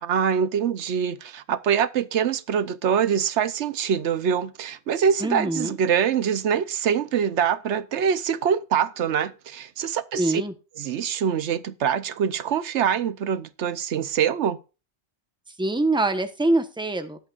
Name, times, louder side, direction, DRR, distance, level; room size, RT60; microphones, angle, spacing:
voice 1, 0.0-10.4 10.8-14.6, right 7 dB, 85° right, 1.1 m, -24 dB
voice 2, 5.2-5.7 10.2-10.5 15.6-17.2, right 2 dB, 5° right, 1.0 m, -24 dB
19.0 x 8.0 x 2.4 m
omnidirectional pair, 1.1 m